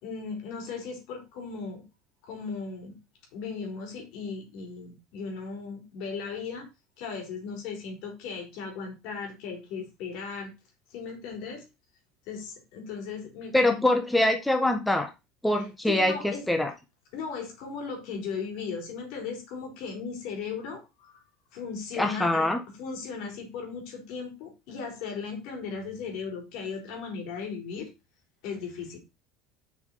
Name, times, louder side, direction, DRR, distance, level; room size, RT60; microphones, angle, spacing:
voice 1, 0.0-1.8 2.2-3.0 3.3-6.7 7.0-10.5 10.9-11.7 12.3-13.8 15.5-16.5 17.1-21.2 21.5-27.9 28.4-29.0, left 5 dB, 70° left, 2 dB, 3.8 m, -37 dB
voice 2, 13.5-15.1 15.4-16.7 22.0-22.6, left 1 dB, 5° left, 4 dB, 1.3 m, -24 dB
7.0 x 6.0 x 4.2 m, 0.26 s
supercardioid pair, 105°, 0 cm